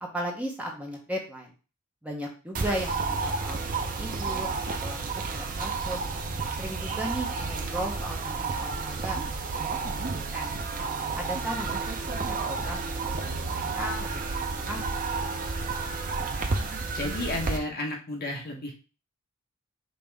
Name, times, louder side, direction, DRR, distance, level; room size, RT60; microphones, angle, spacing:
voice 1, 0.0-1.5 2.0-4.5 4.8-6.0 6.6-9.2 10.0-10.1 10.3-10.5 11.2-11.7 12.1-14.8, right 1 dB, 5° right, -1 dB, 1.0 m, -36 dB
sound 1, 2.5-17.6, right 4 dB, 40° right, 0.6 m, -31 dB
voice 2, 16.9-18.8, left 2 dB, 45° left, 0 dB, 1.0 m, -32 dB
5.4 x 2.9 x 3.4 m, 0.34 s
head